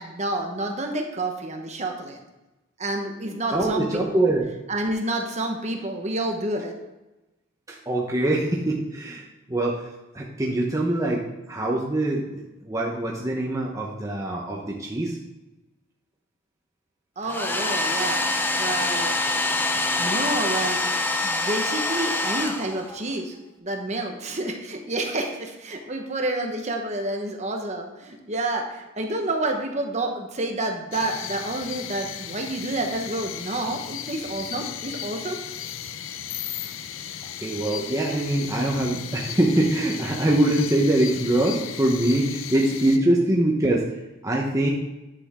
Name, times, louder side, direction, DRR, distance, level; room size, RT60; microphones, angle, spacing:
voice 1, 0.0-2.2 2.8-4.3 4.7-6.7 17.2-18.3 18.6-19.1 20.0-20.8 21.2-35.4, right 2 dB, 35° right, 3 dB, 1.1 m, -29 dB
voice 2, 3.5-4.5 7.7-15.2 17.9-18.1 18.4-18.6 21.3-21.4 36.6-36.7 37.4-44.7, right 1 dB, 15° right, -2 dB, 0.9 m, -24 dB
Domestic sounds home sounds, 17.2-23.1, left 2 dB, 10° left, 0.6 m, -25 dB
sound 1, 30.9-43.0, left 9 dB, 85° left, 0.6 m, -36 dB
10.0 x 7.0 x 3.7 m, 1.0 s
head